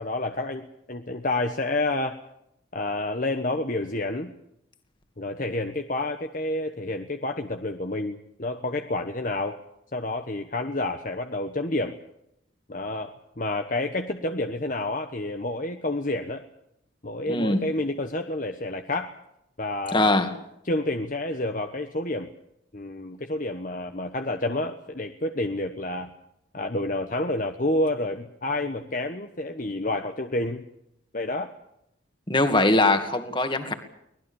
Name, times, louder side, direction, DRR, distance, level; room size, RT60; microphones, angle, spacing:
voice 1, 0.0-2.2 2.7-4.3 5.2-9.6 9.9-11.9 12.7-16.4 17.0-19.2 19.6-20.1 20.6-22.3 22.7-26.1 26.5-30.6 31.1-31.5, left 2 dB, 40° left, 6 dB, 1.2 m, -29 dB
voice 2, 17.3-17.7 19.9-20.3 32.3-33.7, left 2 dB, 25° left, 7 dB, 2.3 m, -22 dB
24.5 x 19.5 x 7.1 m, 0.80 s
head